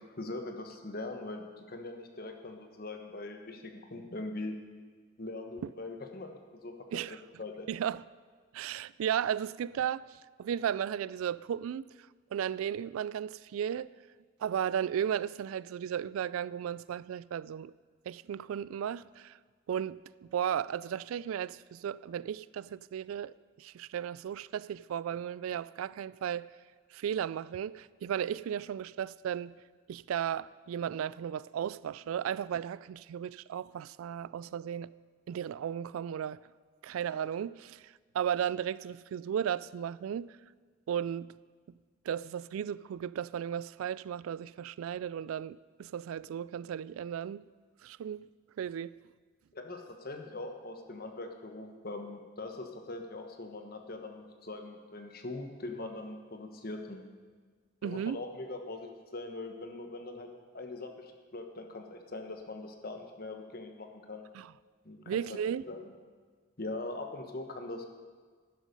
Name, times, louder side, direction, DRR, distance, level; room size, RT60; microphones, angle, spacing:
voice 1, 0.0-4.6 5.2-6.3 6.6-6.7 7.1-7.7 49.5-57.1 57.8-60.3 60.5-64.2 64.8-65.4 65.7-65.9 66.6-67.9, left 2 dB, 45° left, 1.1 m, -42 dB
voice 2, 7.7-8.0 8.5-10.1 10.4-11.9 12.3-13.9 14.4-17.7 18.1-19.4 19.7-20.0 20.3-26.5 26.9-29.5 29.9-34.9 35.3-36.4 36.8-37.8 38.1-40.3 40.9-41.3 42.1-47.4 47.8-48.2 48.6-48.9 57.8-58.2 64.3-64.5 65.1-65.6, right 9 dB, 90° right, 0.3 m, -35 dB
11.5 x 11.0 x 5.3 m
head